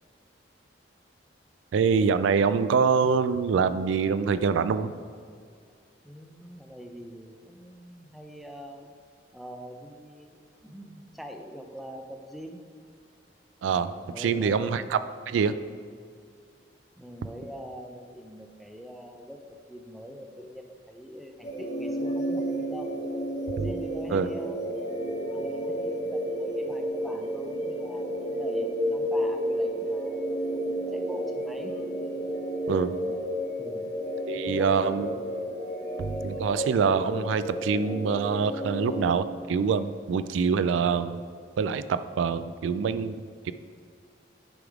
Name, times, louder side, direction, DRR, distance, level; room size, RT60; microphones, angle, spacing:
voice 1, 1.7-4.9 13.6-15.0 15.3-15.5 23.6-23.7 24.1-24.3 32.7-32.9 34.3-35.1 36.0-41.2 41.6-43.5, right 6 dB, 90° right, 13 dB, 0.3 m, -25 dB
voice 2, 6.0-8.9 9.3-12.6 13.7-15.0 16.1-16.2 17.0-22.9 23.5-24.6 25.3-30.3 30.9-31.7 33.6-33.9 34.3-34.7 35.1-35.2, equal, ahead, 2 dB, 0.5 m, -44 dB
sound 1, 21.4-39.2, equal, 35° left, 1.4 m, -31 dB
9.9 x 3.5 x 4.7 m, 2.1 s
head